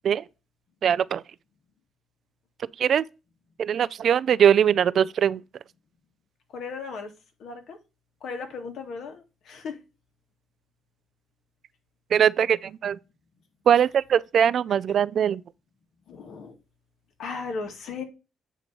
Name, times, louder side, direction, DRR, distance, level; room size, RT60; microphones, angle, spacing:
voice 1, 0.8-1.2 2.8-3.0 3.6-5.4 12.1-13.0 13.7-15.4, right 8 dB, 60° right, 0.3 m, -21 dB
voice 2, 6.5-7.1 7.4-7.8 8.2-9.8 16.1-16.6 17.2-18.0, left 4 dB, 70° left, 1.9 m, -36 dB
9.1 x 3.1 x 5.2 m
cardioid pair, 90°, 0 cm